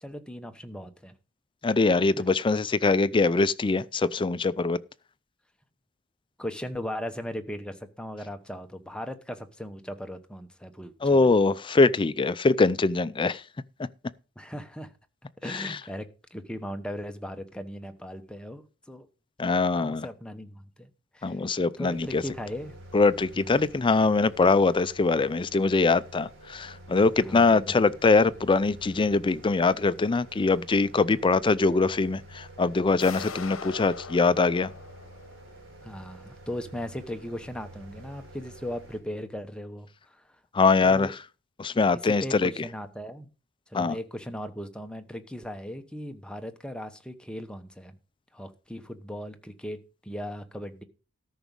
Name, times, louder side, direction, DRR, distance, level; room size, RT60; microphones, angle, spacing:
voice 1, 0.0-1.1 2.2-2.3 6.4-11.3 14.4-14.9 15.4-19.1 19.7-20.9 21.1-21.4 21.8-22.8 23.3-23.7 27.2-27.7 35.8-40.3 40.8-41.1 42.0-43.3 43.7-47.9 48.3-50.8, equal, 5° left, 1.0 m, -38 dB
voice 2, 1.6-4.8 11.0-13.4 15.5-15.8 19.4-20.1 21.2-22.2 22.9-34.7 40.5-41.2 41.6-42.5 43.7-44.0, left 3 dB, 25° left, 0.4 m, -23 dB
sound 1, 21.9-39.0, right 1 dB, 70° right, 4.7 m, -49 dB
sound 2, 33.0-35.8, left 5 dB, 70° left, 1.0 m, -41 dB
13.0 x 6.0 x 5.3 m
head